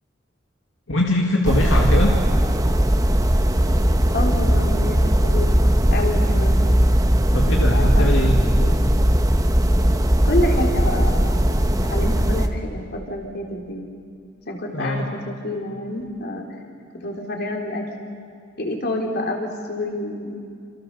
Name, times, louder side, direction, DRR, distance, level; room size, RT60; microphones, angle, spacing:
voice 1, 0.9-2.1 7.3-8.4 14.7-15.0, left 1 dB, 75° left, 0 dB, 2.4 m, -22 dB
sound 1, 1.4-12.5, equal, 20° right, 1.3 m, -18 dB
voice 2, 4.1-5.5 5.9-6.7 7.6-8.3 8.6-8.7 10.2-11.4 11.8-13.8 14.5-16.5 16.9-17.9 18.6-20.4, left 1 dB, 55° left, 1 dB, 4.1 m, -28 dB
28.5 x 27.0 x 7.0 m, 2.3 s
head